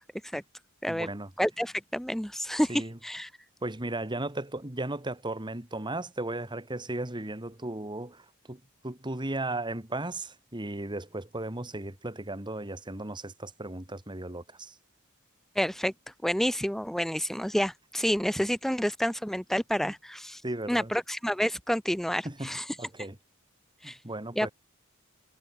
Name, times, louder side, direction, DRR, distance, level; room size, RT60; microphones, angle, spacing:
voice 1, 0.9-1.3 2.7-3.0 3.6-14.7 19.8-19.9 20.4-20.9 22.2-22.5 22.8-23.2 23.8-24.5, right 2 dB, 20° right, 2.2 m, -36 dB
voice 2, 1.4-3.3 15.5-15.9 16.2-20.4 20.7-22.8 23.8-24.0 24.4-24.5, equal, ahead, 1.0 m, -29 dB
head